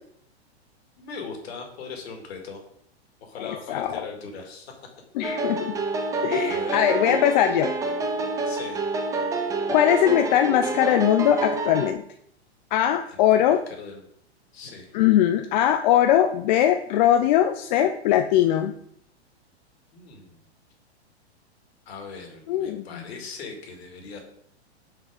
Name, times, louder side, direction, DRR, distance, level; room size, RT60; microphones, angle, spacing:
voice 1, 1.0-2.6 3.2-4.7 5.2-5.4 6.4-6.8 8.4-8.8 13.1-14.0 14.5-14.9 19.9-20.4 21.9-24.2, left 5 dB, 70° left, 2 dB, 2.3 m, -39 dB
voice 2, 3.4-4.0 5.2-5.8 6.2-7.7 9.7-12.0 12.7-13.6 14.9-18.7 22.5-23.0, left 11 dB, 45° left, 7 dB, 0.5 m, -21 dB
sound 1, 5.2-11.9, right 3 dB, 10° right, 0.4 m, -28 dB
5.6 x 5.2 x 5.1 m, 0.69 s
hypercardioid pair, 130°, 33 cm